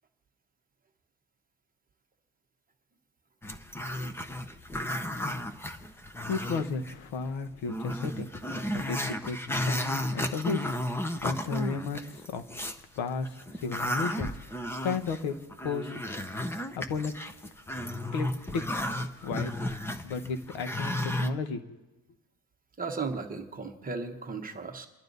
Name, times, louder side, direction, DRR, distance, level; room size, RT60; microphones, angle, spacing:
Growling, 3.4-6.9 7.3-7.4 7.7-12.8 13.2-21.3, left 1 dB, 5° left, 0.4 m, -33 dB
voice 1, 6.3-8.3 8.7-10.7 10.9-12.5 12.9-14.3 14.8-15.3 15.6-15.9 16.8-17.1 18.1-18.3 18.5-18.6 19.2-19.5 20.0-21.8, left 5 dB, 85° left, 8 dB, 1.4 m, -33 dB
voice 2, 22.8-24.9, right 4 dB, 20° right, 3 dB, 1.1 m, -35 dB
29.0 x 11.5 x 4.0 m, 1.1 s
cardioid pair, 180°, 45 cm